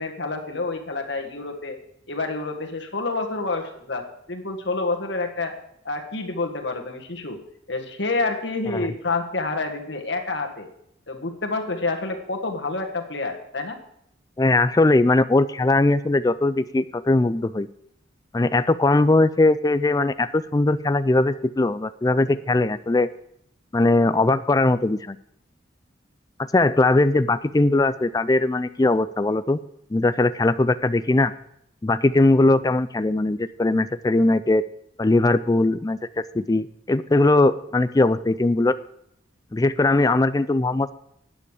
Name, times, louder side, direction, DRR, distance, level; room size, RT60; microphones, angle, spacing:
voice 1, 0.0-1.8 2.1-5.6 5.9-7.4 7.7-10.7 11.1-13.8, left 3 dB, 65° left, 4 dB, 1.7 m, -28 dB
voice 2, 14.4-17.7 18.3-23.1 23.7-25.2 26.4-29.6 29.9-31.3 31.8-34.6 35.0-38.7 39.5-40.9, left 2 dB, 20° left, 13 dB, 0.3 m, -20 dB
12.5 x 9.2 x 4.9 m, 0.73 s
head